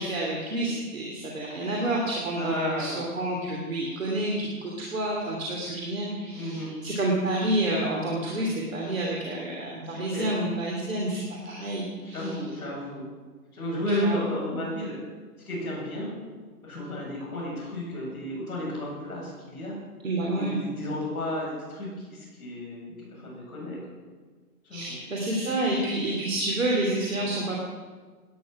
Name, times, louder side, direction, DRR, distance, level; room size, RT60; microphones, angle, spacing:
voice 1, 0.0-12.4 14.0-14.2 20.0-20.6 24.7-27.6, right 1 dB, 55° right, -2 dB, 3.2 m, -29 dB
voice 2, 2.3-3.2 6.3-6.7 9.8-10.3 12.0-13.1 13.5-14.9 15.5-16.1 16.6-19.8 20.3-23.8 24.6-25.0, left 1 dB, 10° left, -12 dB, 6.4 m, -33 dB
18.0 x 10.5 x 6.1 m, 1.4 s
hypercardioid pair, 175°, 46 cm